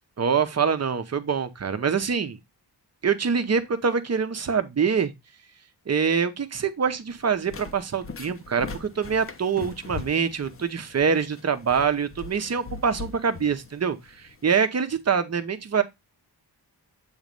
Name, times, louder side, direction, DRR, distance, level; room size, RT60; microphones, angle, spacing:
voice 1, 0.2-2.4 3.0-5.1 5.9-15.8, right 6 dB, 40° right, 0.8 m, -25 dB
sound 1, 7.1-14.5, left 4 dB, 35° left, 0.7 m, -41 dB
8.1 x 3.1 x 5.2 m
wide cardioid pair, 160°, 40 cm